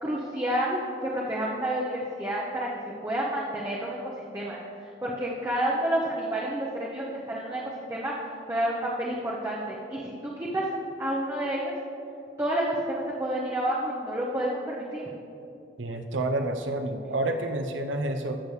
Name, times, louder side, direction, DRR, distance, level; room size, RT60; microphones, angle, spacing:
voice 1, 0.0-2.7 3.0-7.6 7.9-8.1 8.5-10.7 11.0-11.7 12.4-15.0, right 1 dB, 15° right, -5 dB, 0.8 m, -29 dB
voice 2, 15.8-18.4, right 2 dB, 90° right, 6 dB, 0.7 m, -29 dB
13.5 x 6.8 x 3.2 m, 2.7 s
head